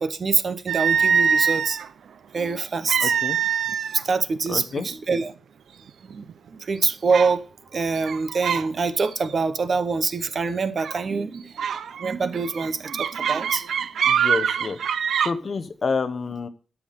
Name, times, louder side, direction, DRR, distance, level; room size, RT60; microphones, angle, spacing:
voice 1, 0.0-1.8 2.3-3.1 3.9-5.3 6.1-6.3 6.5-7.4 7.7-11.5 12.0-13.7 16.3-16.4, right 4 dB, 40° right, 0.8 m, -25 dB
sound 1, 0.7-1.9 2.9-4.0 4.4-4.6 5.3-5.4 5.9-6.3 7.1-7.4 8.0-8.7 9.0-9.3 10.8-11.0 11.6-15.3, right 7 dB, 80° right, 0.6 m, -24 dB
voice 2, 3.0-3.4 4.5-4.9 14.1-14.8 15.2-16.5, left 4 dB, 40° left, 1.0 m, -28 dB
13.0 x 6.0 x 5.0 m
wide cardioid pair, 155°, 0 cm